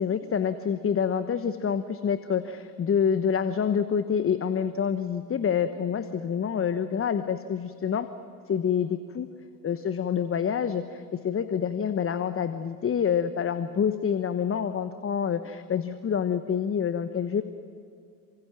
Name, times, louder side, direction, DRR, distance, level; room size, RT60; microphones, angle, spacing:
voice 1, 0.0-8.1 8.5-9.3 9.6-17.4, left 7 dB, 25° left, 11 dB, 1.1 m, -27 dB
28.0 x 25.5 x 6.1 m, 2.4 s
figure-of-eight pair, 60°, 47 cm